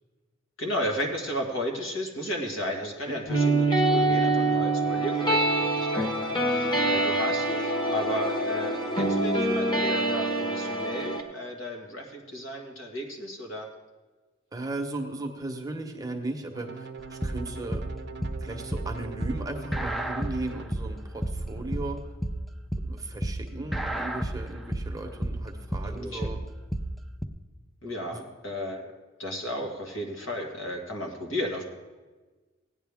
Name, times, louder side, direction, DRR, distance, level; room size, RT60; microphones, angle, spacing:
voice 1, 0.6-13.7 25.8-26.3 27.8-28.9 29.2-31.7, equal, 70° left, 2 dB, 2.0 m, -34 dB
sound 1, 3.3-11.2, right 2 dB, 20° left, 1.4 m, -25 dB
voice 2, 14.5-17.8 18.4-22.0 22.8-26.4 28.1-28.2, right 2 dB, 20° right, 3 dB, 1.0 m, -36 dB
sound 2, 16.5-20.6 21.4-21.9, right 4 dB, 55° right, 0.6 m, -42 dB
sound 3, 17.0-27.2, right 1 dB, ahead, 0.5 m, -31 dB
16.5 x 9.8 x 3.5 m, 1.3 s
head